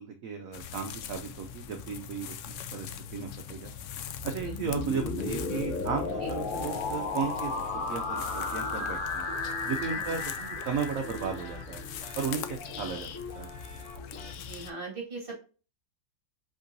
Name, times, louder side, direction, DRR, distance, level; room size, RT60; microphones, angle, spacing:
voice 1, 0.0-2.4 2.7-3.7 4.2-7.5 7.9-9.3 9.6-11.8 12.2-13.1 13.4-13.5, right 6 dB, 65° right, 4 dB, 0.9 m, -35 dB
sound 1, 0.5-14.7, left 7 dB, 90° left, 0.6 m, -42 dB
sound 2, 4.2-12.1, left 3 dB, 45° left, 0.7 m, -34 dB
voice 2, 4.4-4.8 6.2-6.3 9.9-10.2 12.7-12.8 14.4-15.3, right 2 dB, 30° right, -2 dB, 2.1 m, -40 dB
sound 3, 8.3-14.3, left 1 dB, 10° left, 2.4 m, -46 dB
5.3 x 3.7 x 2.6 m, 0.35 s
omnidirectional pair, 1.9 m